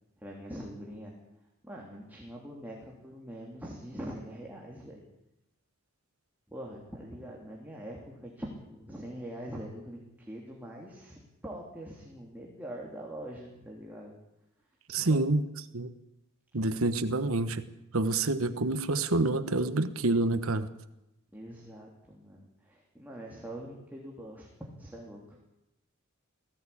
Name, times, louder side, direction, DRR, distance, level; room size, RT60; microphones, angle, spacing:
voice 1, 0.2-1.1 1.6-5.0 6.5-14.1 15.0-15.4 21.3-25.4, equal, 10° right, -3 dB, 3.1 m, -43 dB
voice 2, 14.9-15.4 15.7-15.9 16.5-17.7 17.9-20.7, right 2 dB, 75° right, 11 dB, 1.3 m, -27 dB
19.0 x 16.0 x 8.6 m, 0.90 s
head